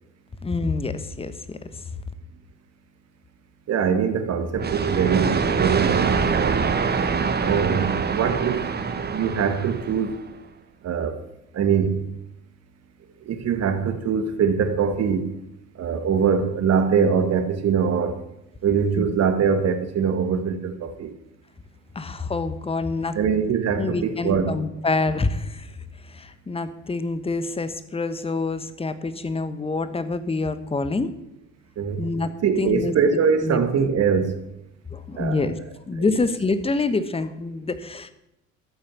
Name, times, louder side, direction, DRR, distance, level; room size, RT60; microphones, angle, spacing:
voice 1, 0.4-1.6 19.0-19.1 21.9-23.2 23.8-25.7 26.1-31.1 32.0-32.9 33.4-33.6 34.9-35.6 35.9-38.1, left 3 dB, 15° left, 1.2 m, -26 dB
voice 2, 3.7-6.7 7.4-8.7 9.1-10.2 10.8-11.2 11.5-12.0 13.2-15.3 15.8-18.2 18.6-21.1 23.1-24.6 31.8-32.0 32.4-34.4 35.2-35.4 36.0-36.2, right 6 dB, 40° right, 1.8 m, -23 dB
sound 1, 4.6-10.3, right 5 dB, 25° right, 1.4 m, -24 dB
13.0 x 8.8 x 7.2 m
figure-of-eight pair, 60°, 38 cm